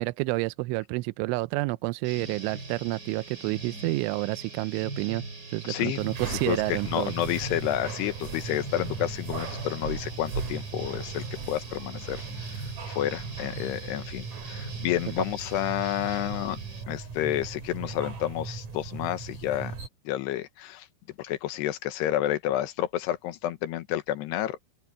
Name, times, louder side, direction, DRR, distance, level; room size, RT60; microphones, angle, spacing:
voice 1, 0.0-5.2 5.5-7.1, right 23 dB, 90° right, 3.0 m, -29 dB
sound 1, 2.0-16.8, right 2 dB, 20° right, 4.6 m, -42 dB
voice 2, 5.7-16.6 16.9-19.7 20.1-20.9 21.2-24.6, left 13 dB, 70° left, 3.0 m, -30 dB
sound 2, 6.0-19.9, right 5 dB, 40° right, 4.0 m, -38 dB
open air
omnidirectional pair, 5.4 m